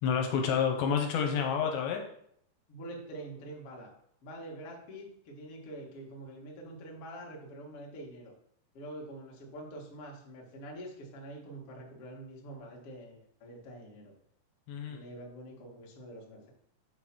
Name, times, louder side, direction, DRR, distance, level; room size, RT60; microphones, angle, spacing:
voice 1, 0.0-2.0 14.7-15.0, left 7 dB, 75° left, 3 dB, 2.9 m, -29 dB
voice 2, 2.7-3.9 4.2-8.3 8.7-14.1 14.9-16.5, right 1 dB, 55° left, -2 dB, 1.6 m, -46 dB
8.1 x 3.9 x 6.0 m, 0.68 s
omnidirectional pair, 5.3 m